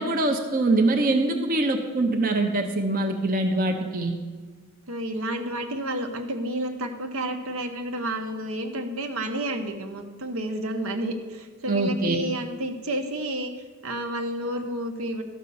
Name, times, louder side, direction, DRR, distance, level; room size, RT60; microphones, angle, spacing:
voice 1, 0.0-4.2 11.7-12.2, right 2 dB, 40° right, 3 dB, 0.8 m, -23 dB
voice 2, 4.9-13.5 13.8-15.2, right 1 dB, 75° right, 4 dB, 1.1 m, -30 dB
12.5 x 5.3 x 6.9 m, 1.5 s
head